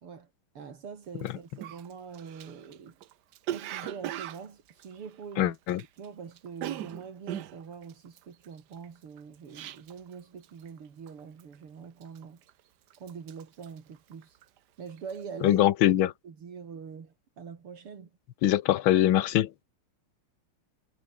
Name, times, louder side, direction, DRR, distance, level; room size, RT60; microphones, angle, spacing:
voice 1, 0.0-3.0 3.5-5.6 6.0-12.4 13.0-14.4 14.8-15.6 15.9-18.1, right 6 dB, 80° right, 3.5 m, -44 dB
Cough, 1.2-1.3 1.6-6.1 6.3-10.1 10.4-10.8 11.1-11.5 12.0-12.6 12.9-14.6 14.9-15.2, right 12 dB, 65° right, 1.1 m, -39 dB
voice 2, 5.4-5.8 15.4-16.1 18.4-19.5, left 13 dB, 70° left, 1.7 m, -22 dB
omnidirectional pair, 2.4 m